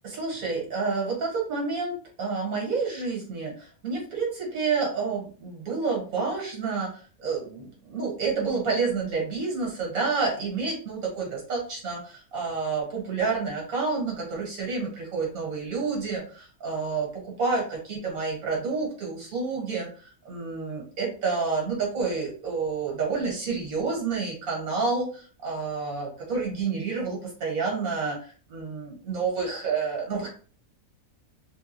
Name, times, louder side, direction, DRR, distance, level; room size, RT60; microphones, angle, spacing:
voice 1, 0.0-30.3, right 4 dB, 80° right, -2 dB, 1.9 m, -29 dB
3.9 x 2.3 x 2.9 m, 0.39 s
omnidirectional pair, 1.5 m